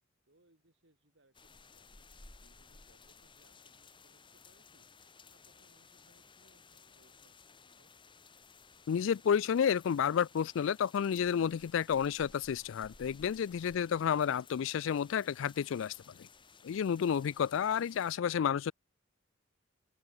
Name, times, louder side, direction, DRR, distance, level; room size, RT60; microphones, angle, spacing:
voice 1, 0.3-4.9 5.3-7.9, right 1 dB, 60° right, 4.7 m, -70 dB
sound 1, 1.3-18.2, left 4 dB, 25° left, 2.9 m, -58 dB
voice 2, 8.9-16.3 16.6-18.7, left 8 dB, 70° left, 0.3 m, -31 dB
head